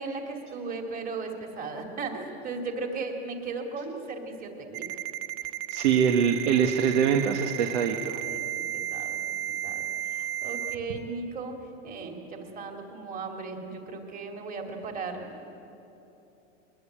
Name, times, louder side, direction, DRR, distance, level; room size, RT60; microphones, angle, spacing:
voice 1, 0.0-5.0 8.2-9.2 9.5-15.3, right 4 dB, 25° right, 3 dB, 2.7 m, -37 dB
Ringtone, 4.7-10.7, right 12 dB, 45° right, 0.9 m, -33 dB
voice 2, 5.7-8.2, right 7 dB, 70° right, 4 dB, 1.6 m, -24 dB
23.0 x 20.5 x 8.8 m, 2.9 s
supercardioid pair, 145°, 36 cm